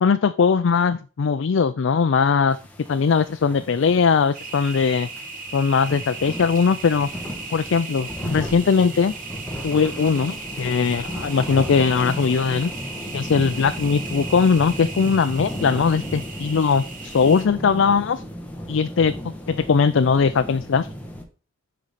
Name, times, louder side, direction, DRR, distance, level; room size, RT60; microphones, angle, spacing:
voice 1, 0.0-2.6 2.9-5.1 5.5-7.1 7.5-9.1 9.6-12.7 13.1-18.2 18.7-20.9, left 5 dB, 75° left, 10 dB, 0.4 m, -20 dB
sound 1, 2.5-21.2, equal, 10° left, 1.2 m, -35 dB
sound 2, 4.3-17.5, right 4 dB, 45° right, 1.4 m, -37 dB
7.4 x 5.1 x 4.1 m, 0.36 s
head